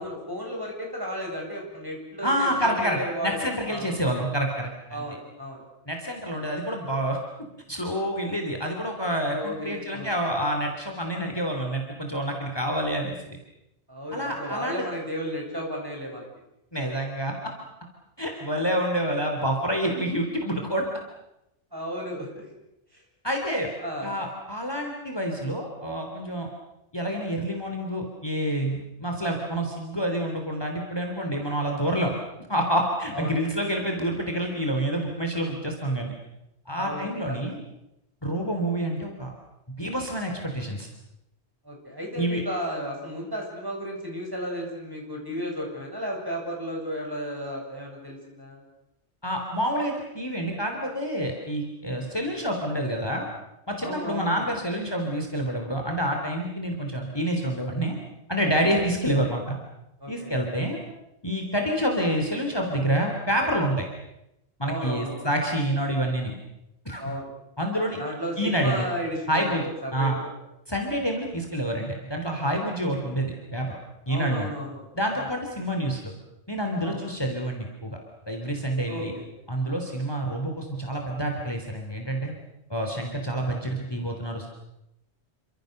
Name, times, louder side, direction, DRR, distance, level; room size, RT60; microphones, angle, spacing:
voice 1, 0.0-3.9 4.9-5.6 9.3-10.1 13.9-16.3 19.0-19.1 21.7-22.5 22.9-23.0 23.8-24.1 33.1-33.4 36.7-37.5 41.6-48.6 53.8-54.4 58.7-58.9 60.0-60.4 64.6-65.3 67.0-67.3 68.0-70.1 74.1-74.9 75.1-75.3 76.8-77.0 78.9-79.3, equal, 20° right, 0 dB, 8.0 m, -34 dB
voice 2, 2.2-5.0 5.9-7.2 7.7-13.4 14.1-14.8 16.7-17.3 18.2-20.8 23.2-23.7 24.0-26.5 26.9-32.1 32.5-36.1 36.7-37.6 38.2-39.3 39.8-40.9 42.2-42.4 49.2-53.3 53.7-58.0 58.3-59.6 60.1-60.8 61.2-63.8 64.6-66.3 66.8-67.0 67.6-68.0 68.4-68.8 69.3-69.6 69.9-70.2 70.7-73.8 74.1-74.5 74.9-76.1 76.5-78.0 78.3-79.1 79.5-82.3 82.7-84.5, right 1 dB, 20° left, 2 dB, 3.4 m, -28 dB
28.5 x 26.0 x 6.7 m, 0.87 s
omnidirectional pair, 1.1 m